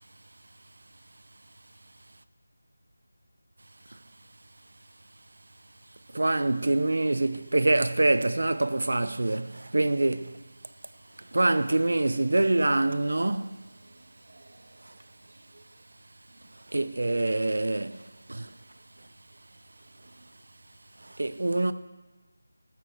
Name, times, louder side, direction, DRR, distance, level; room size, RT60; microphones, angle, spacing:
voice 1, 6.1-10.4 11.3-13.6 16.7-18.0 18.3-18.5 21.2-21.7, right 2 dB, 70° right, 0.6 m, -25 dB
15.0 x 6.1 x 4.5 m
figure-of-eight pair, 170°, 0 cm